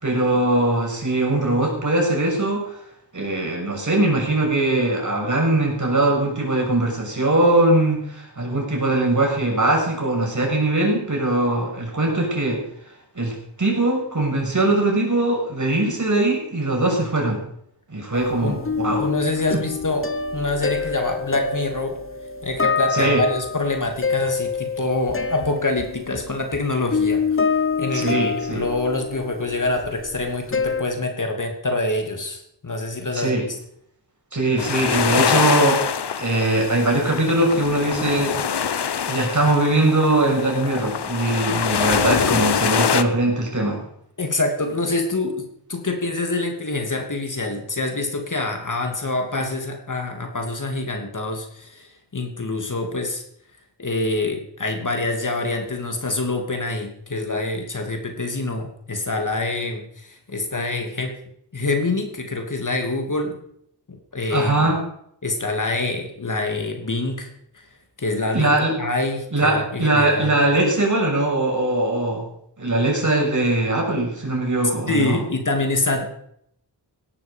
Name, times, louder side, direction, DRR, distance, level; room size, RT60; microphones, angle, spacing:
voice 1, 0.0-2.8 3.1-12.6 13.1-17.4 17.9-19.0 22.9-23.2 27.9-28.6 33.1-33.4 34.3-35.9 36.2-38.3 39.1-43.8 64.3-64.8 68.3-68.7 69.3-72.2 72.6-75.2, right 2 dB, 45° right, 0 dB, 6.8 m, -21 dB
sound 1, 18.1-30.8, left 5 dB, 30° left, 0.9 m, -26 dB
voice 2, 19.0-22.0 22.4-27.4 27.8-33.3 44.2-53.2 53.8-61.2 61.5-63.4 63.9-64.7 65.2-67.3 68.0-70.4 74.9-76.1, left 2 dB, 45° left, 4 dB, 2.7 m, -26 dB
sound 2, 34.6-43.0, left 7 dB, 65° left, 1.0 m, -24 dB
17.5 x 12.0 x 5.2 m, 0.69 s
wide cardioid pair, 70°, 43 cm